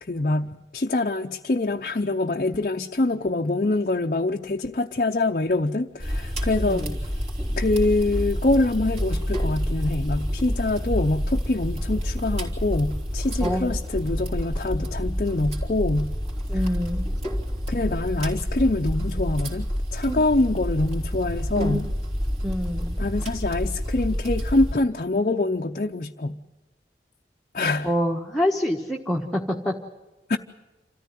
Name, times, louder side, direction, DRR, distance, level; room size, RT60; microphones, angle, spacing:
voice 1, 0.0-6.9 7.6-16.1 17.7-21.8 23.0-26.4 27.5-27.9 30.3-30.4, left 2 dB, 45° left, 3 dB, 0.6 m, -25 dB
sound 1, 6.0-24.7, equal, 35° right, 3.2 m, -28 dB
voice 2, 6.7-7.0 13.4-13.7 16.5-17.1 20.1-20.2 21.5-21.8 22.4-23.0 27.8-29.7, equal, ahead, -1 dB, 1.2 m, -26 dB
27.5 x 14.0 x 9.2 m, 1.1 s
head